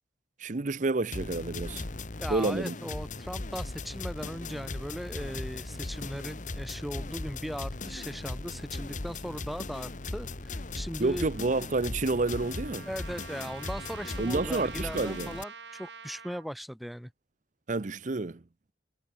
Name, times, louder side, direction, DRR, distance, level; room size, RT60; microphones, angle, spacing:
voice 1, 0.4-1.8 2.3-2.8 11.0-12.9 14.2-15.4 17.7-18.4, right 3 dB, 45° right, 0.7 m, -29 dB
sound 1, 1.1-15.4, left 2 dB, 45° left, 1.2 m, -38 dB
voice 2, 2.2-11.3 12.9-17.1, equal, ahead, 0.7 m, -38 dB
Trumpet, 11.3-16.5, right 6 dB, 80° right, 2.4 m, -47 dB
head